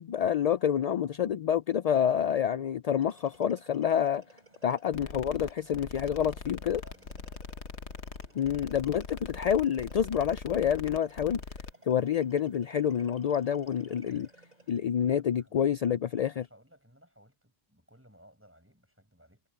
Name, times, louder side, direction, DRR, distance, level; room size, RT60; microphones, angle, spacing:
voice 1, 0.0-4.2 4.6-6.8 8.4-11.4 11.9-14.3 14.7-16.4, left 9 dB, 60° left, 0.4 m, -28 dB
sound 1, 3.0-14.9, right 2 dB, 40° right, 7.1 m, -59 dB
sound 2, 4.9-11.7, left 5 dB, 75° left, 1.5 m, -42 dB
voice 2, 6.4-7.6 14.8-19.4, equal, 10° right, 7.6 m, -60 dB
omnidirectional pair, 1.1 m